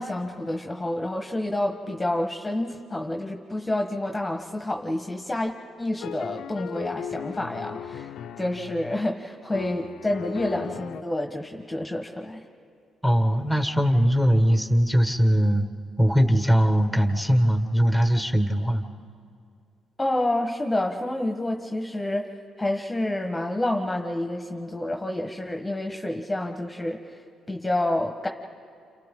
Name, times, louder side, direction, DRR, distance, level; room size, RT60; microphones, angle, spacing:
voice 1, 0.0-5.5 5.8-8.1 8.4-12.4 20.0-22.3 22.6-27.0 27.5-28.3, left 1 dB, 15° left, 3 dB, 1.3 m, -28 dB
sound 1, 6.0-9.1 9.5-11.0, left 9 dB, 75° left, 0.6 m, -37 dB
voice 2, 13.0-15.7 16.0-18.8, equal, 10° right, 5 dB, 1.7 m, -21 dB
29.0 x 27.0 x 3.8 m, 2.3 s
cardioid pair, 90°, 0 cm